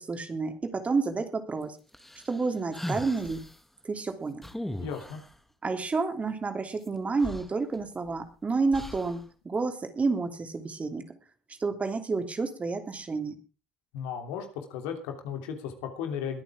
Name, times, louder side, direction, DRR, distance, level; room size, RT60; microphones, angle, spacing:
voice 1, 0.0-1.8 2.3-3.4 3.8-4.4 5.6-11.2 11.6-13.3, right 4 dB, 30° right, 7 dB, 3.0 m, -30 dB
sound 1, 1.9-3.6 4.4-5.3 6.8-6.9 7.2-8.2 8.7-9.2, left 1 dB, 5° left, 2.1 m, -38 dB
voice 2, 4.8-5.2 13.9-16.4, left 7 dB, 75° left, 5 dB, 3.1 m, -35 dB
22.5 x 9.0 x 3.6 m, 0.35 s
hypercardioid pair, 60°, 5 cm